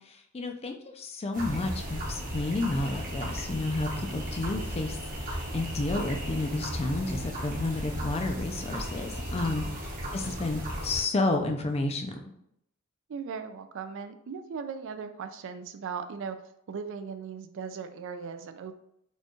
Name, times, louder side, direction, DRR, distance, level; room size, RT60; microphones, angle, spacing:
voice 1, 0.1-9.6 10.1-12.2, left 2 dB, 30° left, 5 dB, 0.4 m, -31 dB
sound 1, 1.3-11.0, equal, 40° right, 0.9 m, -35 dB
voice 2, 9.4-9.8 13.1-16.4 16.7-18.7, right 6 dB, 60° right, 9 dB, 0.4 m, -38 dB
4.3 x 2.3 x 3.0 m, 0.75 s
head